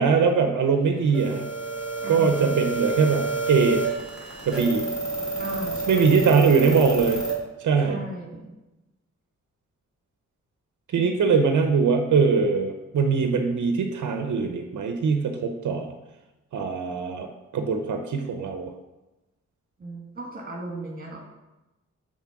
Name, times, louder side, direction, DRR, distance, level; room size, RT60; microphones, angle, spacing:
voice 1, 0.0-1.4 2.1-3.8 4.5-4.9 5.9-7.2 7.6-8.0 10.9-15.9 16.5-17.3 17.5-18.7, right 5 dB, 90° right, 5 dB, 0.7 m, -22 dB
sound 1, 1.1-7.3, right 3 dB, ahead, 2.4 m, -29 dB
voice 2, 2.0-2.6 5.4-6.7 7.8-8.5 19.8-21.2, right 1 dB, 30° right, -1 dB, 1.9 m, -37 dB
5.9 x 4.4 x 5.8 m, 1.0 s
wide cardioid pair, 155°, 29 cm